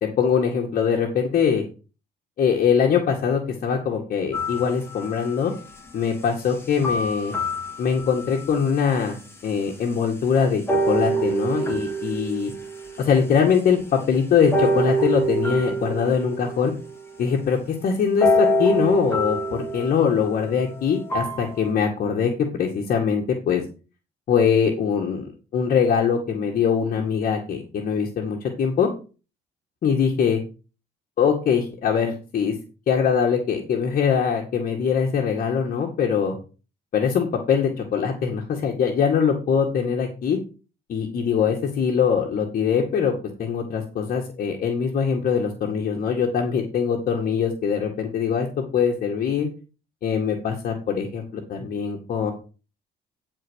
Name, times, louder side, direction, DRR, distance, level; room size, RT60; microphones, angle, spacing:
voice 1, 0.0-1.6 2.4-5.5 5.9-7.4 7.8-9.2 9.4-12.5 13.0-16.7 17.2-23.6 24.3-25.2 25.5-28.9 29.8-30.4 31.2-32.5 32.9-36.4 36.9-40.4 40.9-49.5 50.0-52.3, left 6 dB, 55° left, 0 dB, 2.1 m, -22 dB
sound 1, 4.3-5.4 6.8-8.5 9.2-9.3 10.7-13.6 14.5-17.2 18.2-21.7, right 1 dB, 15° left, 2.3 m, -26 dB
10.0 x 4.5 x 6.4 m, 0.34 s
cardioid pair, 110°, 17 cm